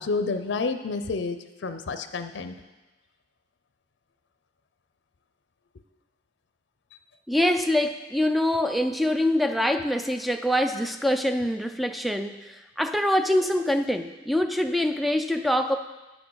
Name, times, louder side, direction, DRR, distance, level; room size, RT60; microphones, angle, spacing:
voice 1, 0.0-2.6, left 4 dB, 85° left, 10 dB, 0.5 m, -29 dB
voice 2, 7.3-12.4 12.8-15.8, left 1 dB, ahead, 8 dB, 0.3 m, -24 dB
8.9 x 6.4 x 4.7 m, 1.1 s
head